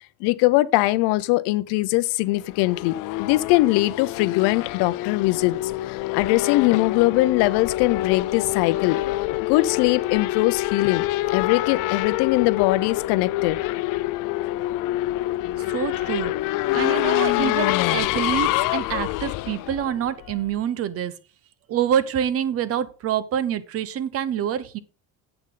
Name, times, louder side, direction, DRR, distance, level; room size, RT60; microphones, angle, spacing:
voice 1, 0.2-9.0 9.5-13.6, left 19 dB, 90° left, 0.7 m, -21 dB
Race car auto racing / Accelerating revving vroom, 2.4-20.5, left 17 dB, 55° left, 0.4 m, -26 dB
voice 2, 15.6-16.3 16.7-21.1 21.7-24.8, right 9 dB, 35° right, 0.8 m, -26 dB
9.7 x 8.1 x 3.8 m
cardioid pair, 170°, 39 cm